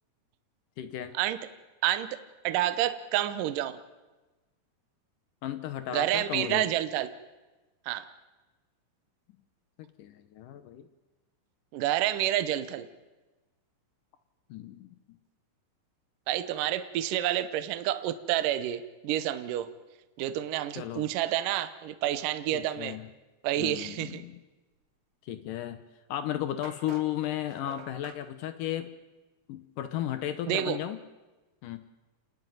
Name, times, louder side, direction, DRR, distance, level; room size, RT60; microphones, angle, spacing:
voice 1, 0.8-1.1 5.4-6.7 9.8-10.9 14.5-15.0 20.7-21.1 22.5-23.1 23.6-24.4 25.2-25.8 26.1-28.9 29.5-31.1 31.6-31.8, left 12 dB, 75° left, 10 dB, 2.0 m, -35 dB
voice 2, 2.4-3.8 5.9-7.1 7.9-8.1 11.7-12.9 16.3-19.7 20.2-23.0 23.4-24.2 30.5-30.8, right 13 dB, 70° right, 11 dB, 2.3 m, -29 dB
sound 1, 25.8-25.9 26.6-28.2, right 5 dB, 55° right, 1.5 m, -48 dB
30.0 x 11.0 x 9.2 m, 1.2 s
omnidirectional pair, 4.6 m